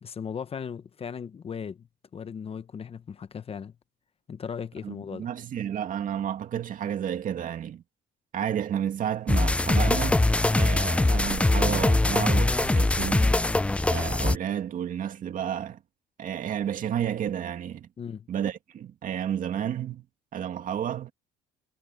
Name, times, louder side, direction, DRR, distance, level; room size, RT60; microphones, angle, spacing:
voice 1, 0.0-1.9 2.1-3.7 4.3-5.3 18.0-18.3, left 7 dB, 35° left, 0.9 m, -37 dB
voice 2, 4.8-7.8 8.3-13.3 13.9-15.8 16.2-17.9 18.3-20.1 20.3-21.1, right 9 dB, 55° right, 2.2 m, -31 dB
sound 1, 9.3-14.4, left 2 dB, 5° left, 0.4 m, -22 dB
cardioid pair, 110°, 17 cm